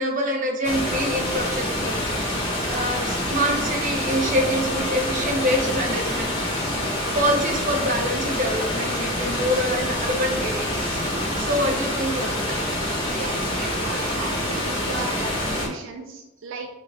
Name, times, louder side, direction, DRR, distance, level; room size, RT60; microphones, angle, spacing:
voice 1, 0.0-2.0 2.3-6.3 7.1-11.0 11.4-12.6 13.6-13.7, equal, 40° right, 1 dB, 0.8 m, -26 dB
sound 1, 0.6-15.7, left 1 dB, 25° left, 1.2 m, -26 dB
voice 2, 13.8-16.7, right 3 dB, 80° right, 4 dB, 0.4 m, -35 dB
6.9 x 2.8 x 2.3 m, 0.97 s
head